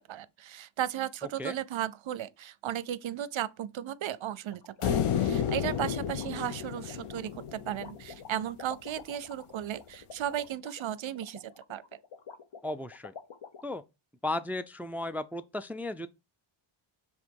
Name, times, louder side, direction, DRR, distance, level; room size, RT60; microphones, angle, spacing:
voice 1, 0.0-12.0, right 11 dB, 70° right, 0.7 m, -35 dB
sound 1, 4.5-13.6, left 6 dB, 60° left, 1.0 m, -48 dB
sound 2, 4.8-8.2, left 8 dB, 90° left, 0.7 m, -31 dB
voice 2, 12.6-13.1 13.6-13.8 14.2-16.1, left 2 dB, 5° right, 0.4 m, -35 dB
7.4 x 3.5 x 4.6 m
wide cardioid pair, 120°, 49 cm